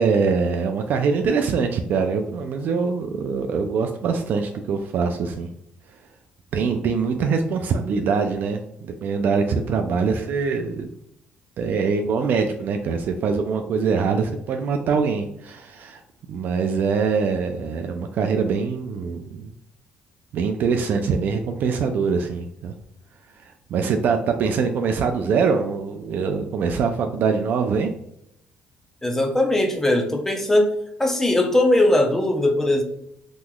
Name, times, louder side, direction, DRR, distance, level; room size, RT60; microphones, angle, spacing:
voice 1, 0.0-5.5 6.5-10.9 11.6-16.0 16.3-19.5 20.3-22.7 23.4-23.5 23.7-27.9, right 5 dB, 60° right, 5 dB, 0.3 m, -23 dB
voice 2, 29.0-30.7 31.0-32.8, left 1 dB, 10° left, 3 dB, 0.6 m, -19 dB
3.6 x 2.9 x 2.2 m, 0.75 s
cardioid pair, 120°, 4 cm